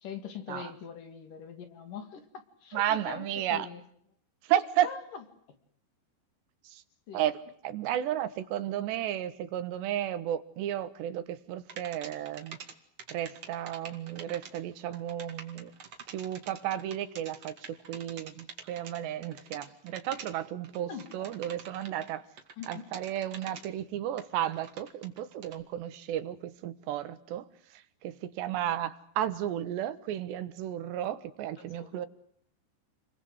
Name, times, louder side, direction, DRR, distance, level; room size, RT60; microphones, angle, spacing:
voice 1, 0.0-3.8 4.8-5.2 7.1-7.2 20.8-21.3 22.6-22.9 31.6-32.1, left 7 dB, 50° left, 9 dB, 3.6 m, -43 dB
voice 2, 2.7-3.7 4.4-4.9 6.7-6.8 7.1-7.3 7.6-12.6 13.1-15.7 16.1-17.5 17.9-22.2 22.7-27.5 28.0-32.1, right 11 dB, 70° right, 13 dB, 3.3 m, -33 dB
sound 1, 11.7-12.7 13.0-22.1 22.4-23.7 24.2-25.6, right 6 dB, 40° right, 2.6 m, -46 dB
29.5 x 22.5 x 8.0 m, 0.66 s
omnidirectional pair, 5.3 m